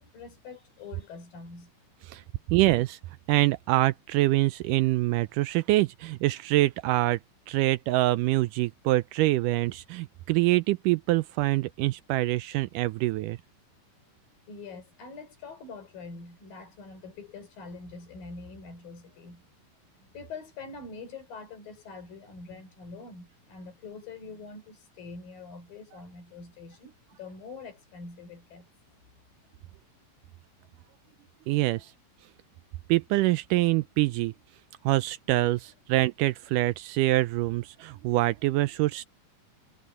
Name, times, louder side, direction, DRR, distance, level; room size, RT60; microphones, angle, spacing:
voice 1, 0.0-1.7 14.5-19.4 20.0-28.7 31.7-31.8, left 4 dB, 70° left, 6.0 m, -44 dB
voice 2, 2.5-3.0 3.3-7.2 7.5-13.4 31.5-31.9 32.9-34.3 34.8-39.0, right 18 dB, 85° right, 1.9 m, -25 dB
omnidirectional pair, 4.2 m